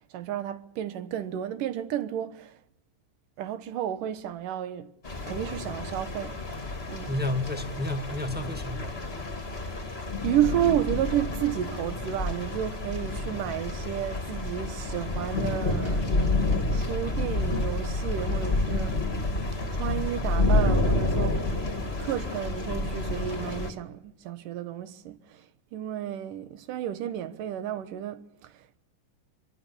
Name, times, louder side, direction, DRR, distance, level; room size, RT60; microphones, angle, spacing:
voice 1, 0.1-2.6 3.4-4.9 5.3-6.6 6.9-7.1 9.6-9.7 10.2-19.0 19.7-21.4 22.0-25.5 25.7-28.8, right 11 dB, 70° right, 2.7 m, -32 dB
sound 1, 5.0-23.7, left 2 dB, 20° left, 2.2 m, -29 dB
voice 2, 7.1-9.0, left 2 dB, 5° right, 0.9 m, -31 dB
27.0 x 22.0 x 7.1 m
omnidirectional pair, 4.3 m